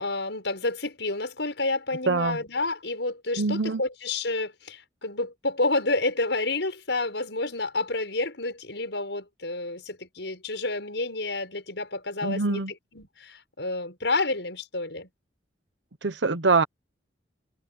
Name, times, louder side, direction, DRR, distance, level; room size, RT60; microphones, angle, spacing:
voice 1, 0.0-12.6 12.9-15.1, left 2 dB, 75° left, 6.1 m, -29 dB
voice 2, 2.1-2.4 3.4-3.8 12.2-12.7 16.0-16.6, right 3 dB, 80° right, 1.1 m, -24 dB
head